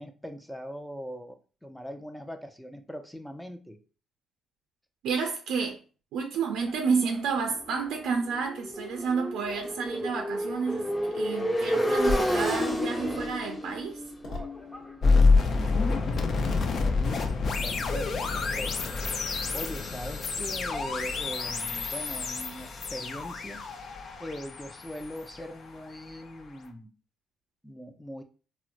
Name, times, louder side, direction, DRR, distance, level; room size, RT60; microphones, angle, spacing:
voice 1, 0.0-3.8 15.9-23.6 24.2-26.9 27.6-28.2, equal, ahead, 0.5 m, -41 dB
voice 2, 5.0-5.8 6.1-10.9 11.1-14.0, right 5 dB, 90° right, 0.5 m, -30 dB
Motorcycle, 6.7-16.5, equal, 20° left, 1.0 m, -32 dB
sound 1, 12.0-24.2, left 2 dB, 75° left, 1.2 m, -44 dB
sound 2, 15.0-26.0, left 4 dB, 55° left, 0.5 m, -27 dB
4.3 x 2.0 x 2.5 m
cardioid pair, 90°, 0 cm